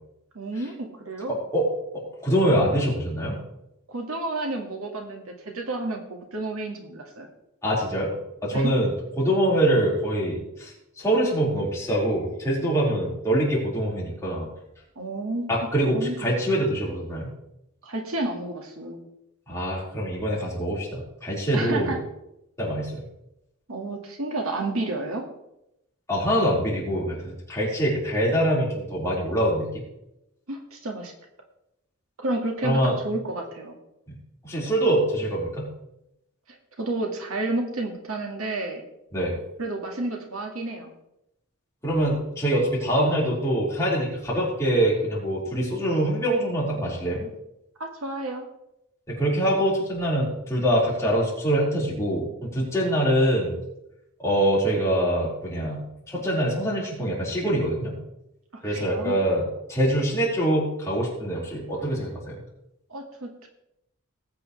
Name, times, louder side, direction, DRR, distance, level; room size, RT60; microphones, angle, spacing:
voice 1, 0.3-1.4 3.9-7.3 8.5-8.7 15.0-15.5 15.9-16.4 17.8-19.0 21.5-22.0 23.7-25.2 30.5-31.1 32.2-32.8 33.0-33.7 36.5-38.8 39.6-40.9 47.8-48.4 58.6-59.1 62.9-63.5, right 2 dB, 80° right, 2 dB, 2.0 m, -31 dB
voice 2, 1.9-3.4 7.6-8.1 8.4-8.9 9.2-10.7 11.0-14.5 15.5-17.3 19.5-21.9 22.6-23.0 26.1-29.7 32.6-32.9 34.4-35.7 39.1-39.3 41.8-47.3 49.1-53.6 54.2-58.0 58.6-59.4 59.7-62.4, right 1 dB, 15° left, -6 dB, 4.6 m, -24 dB
19.5 x 8.6 x 3.3 m, 0.84 s
head